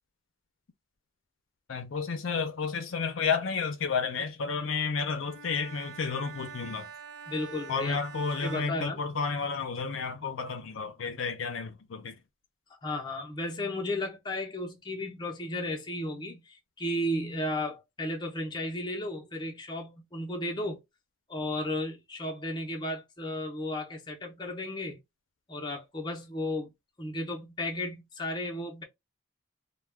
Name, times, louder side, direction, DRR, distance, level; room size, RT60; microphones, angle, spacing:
voice 1, 1.7-6.9 7.7-12.1, left 5 dB, 65° left, 0.5 m, -31 dB
Bowed string instrument, 5.2-9.7, right 6 dB, 85° right, 0.5 m, -46 dB
voice 2, 7.3-8.0 8.4-9.1 12.8-20.8 21.3-25.0 25.5-26.7 27.0-28.8, left 1 dB, 20° left, 0.5 m, -34 dB
2.2 x 2.1 x 3.3 m
head